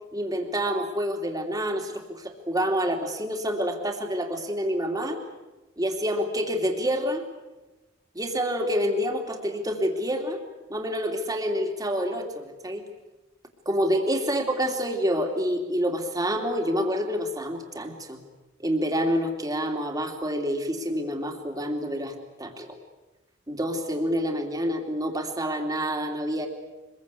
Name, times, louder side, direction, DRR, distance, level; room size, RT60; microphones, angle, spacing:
voice 1, 0.1-5.2 5.8-7.2 8.1-10.4 10.7-12.8 13.7-18.2 18.6-22.8 23.5-26.5, equal, 20° right, 3 dB, 2.8 m, -27 dB
25.0 x 22.0 x 8.4 m, 1.1 s
head